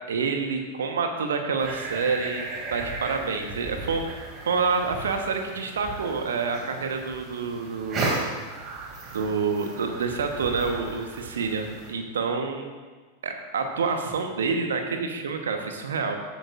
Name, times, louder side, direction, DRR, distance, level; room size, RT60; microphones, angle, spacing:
voice 1, 0.1-2.4 2.7-8.1 9.1-12.7 13.2-16.2, right 5 dB, 65° right, 5 dB, 1.2 m, -28 dB
sound 1, 1.6-11.9, right 2 dB, 30° right, 2.5 m, -35 dB
14.5 x 8.4 x 2.5 m, 1.4 s
figure-of-eight pair, 90°, 0 cm